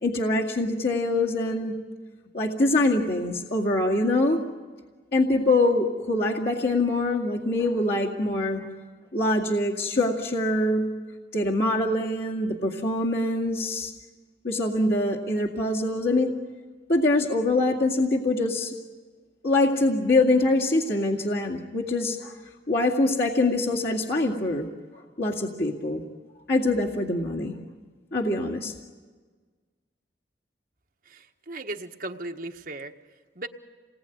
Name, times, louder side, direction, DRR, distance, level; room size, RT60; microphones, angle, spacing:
voice 1, 0.0-1.8 2.3-4.4 5.1-8.6 9.1-10.9 11.3-13.9 14.4-16.3 16.9-18.7 19.4-22.3 22.7-24.7 25.2-26.0 26.5-27.6 28.1-28.7, left 2 dB, 60° left, -3 dB, 2.1 m, -24 dB
voice 2, 31.1-32.9 33.3-33.5, right 2 dB, 55° right, 3 dB, 1.4 m, -36 dB
28.0 x 20.0 x 9.3 m, 1.5 s
head